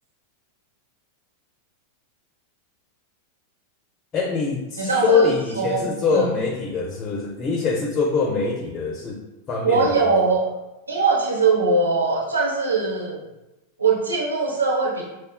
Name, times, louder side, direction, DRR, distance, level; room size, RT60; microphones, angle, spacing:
voice 1, 4.1-9.2 9.5-10.1, left 4 dB, 25° left, 0 dB, 0.5 m, -23 dB
voice 2, 4.8-6.3 9.6-10.4 10.9-13.2 13.8-15.0, right 4 dB, 75° right, -2 dB, 0.9 m, -21 dB
5.8 x 2.2 x 2.3 m, 0.99 s
figure-of-eight pair, 90°, 0 cm